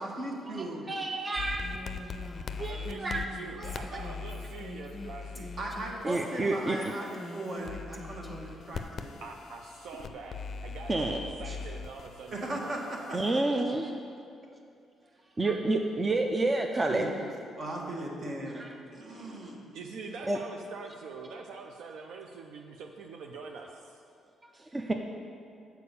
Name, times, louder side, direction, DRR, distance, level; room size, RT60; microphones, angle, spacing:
voice 1, 0.0-0.9 5.6-9.1 12.3-13.4 16.9-17.1 17.6-18.6 18.9-19.6, right 1 dB, 50° right, -1 dB, 1.4 m, -37 dB
voice 2, 0.9-1.7 2.6-3.2 3.6-4.0 6.0-6.8 10.9-11.6 13.1-13.9 15.4-17.1 18.6-18.7 20.3-20.4 24.5-24.9, right 2 dB, 25° right, 3 dB, 0.5 m, -29 dB
sound 1, 1.4-13.3, left 5 dB, 55° left, 0.4 m, -42 dB
Female speech woman speaking, 1.6-8.6, left 1 dB, 10° left, 1.1 m, -45 dB
voice 3, 2.6-5.5 6.4-6.5 9.2-10.4 10.6-12.8 19.7-24.0, right 4 dB, 80° right, 2 dB, 0.5 m, -44 dB
6.8 x 4.6 x 6.8 m, 2.4 s
cardioid pair, 90°, 0 cm